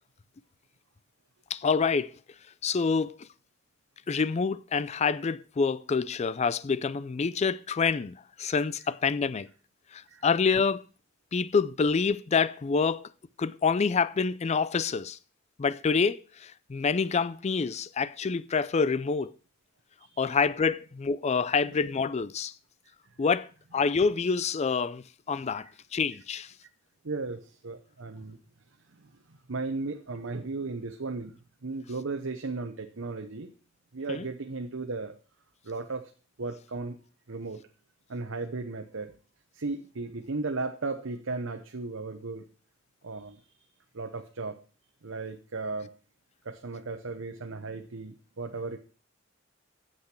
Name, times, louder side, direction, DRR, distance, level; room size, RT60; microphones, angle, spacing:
voice 1, 1.5-2.1 2.6-3.2 4.1-9.5 9.9-10.8 11.3-13.1 13.4-15.2 15.6-19.3 20.2-22.5 23.2-26.5 34.1-34.2, left 5 dB, 35° left, 0.4 m, -27 dB
voice 2, 20.0-20.3 25.5-25.7 27.0-28.4 29.0-31.3 31.6-33.5 33.9-35.2 35.6-36.1 36.4-37.0 37.3-37.6 38.1-39.1 39.5-42.5 43.0-43.4 43.9-44.6 45.0-45.9 46.4-48.8, right 3 dB, 85° right, 0.9 m, -35 dB
8.7 x 7.9 x 5.9 m
head